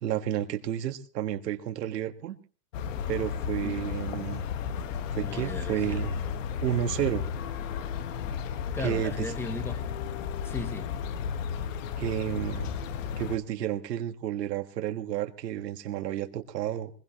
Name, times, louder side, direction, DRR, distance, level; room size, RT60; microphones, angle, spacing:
voice 1, 0.0-2.4 3.1-4.4 5.1-6.2 6.6-7.3 8.8-9.3 12.0-12.7 13.2-16.9, right 11 dB, 70° right, 1.8 m, -31 dB
sound 1, 2.7-13.4, left 7 dB, 50° left, 1.6 m, -33 dB
voice 2, 5.2-6.3 8.7-9.8 10.4-10.9, left 2 dB, 5° left, 0.9 m, -37 dB
22.5 x 21.0 x 3.0 m
supercardioid pair, 165°, 50 cm